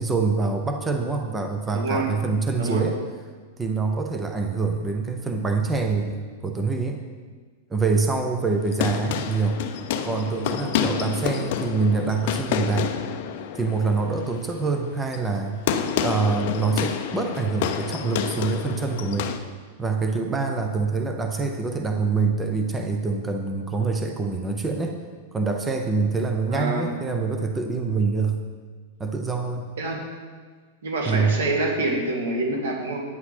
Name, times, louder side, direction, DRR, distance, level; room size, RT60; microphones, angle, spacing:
voice 1, 0.0-3.0 3.6-7.0 7.7-9.6 10.0-12.9 13.5-15.6 16.0-19.3 19.8-25.0 25.3-28.4 29.0-29.7 31.1-31.4, right 4 dB, 10° right, 4 dB, 0.5 m, -25 dB
voice 2, 1.7-2.1 2.6-2.8 26.5-26.9 29.8-30.1 30.8-33.0, right 2 dB, 85° right, 1 dB, 2.4 m, -26 dB
sound 1, 8.5-19.4, left 8 dB, 45° left, 0.6 m, -29 dB
9.7 x 9.4 x 4.4 m, 1.5 s
supercardioid pair, 175°, 0 cm